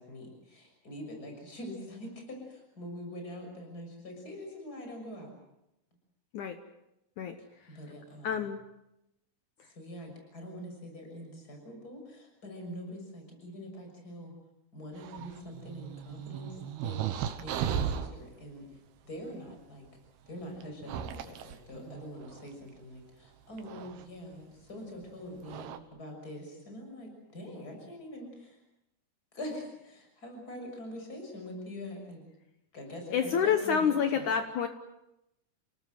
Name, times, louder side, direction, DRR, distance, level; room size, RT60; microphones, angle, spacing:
voice 1, 0.0-5.3 7.4-8.5 9.7-14.3 14.7-18.6 19.0-19.8 20.3-28.6 29.3-32.2 32.7-34.3, left 1 dB, 20° left, 3 dB, 6.8 m, -44 dB
voice 2, 8.2-8.6 33.1-34.7, left 7 dB, 65° left, 7 dB, 2.2 m, -28 dB
sound 1, 15.0-18.2 19.5-19.6 20.6-22.5 23.6-24.0 25.0-25.1 25.5-25.8, right 9 dB, 90° right, 3.2 m, -36 dB
29.0 x 18.5 x 7.8 m, 0.88 s
omnidirectional pair, 4.4 m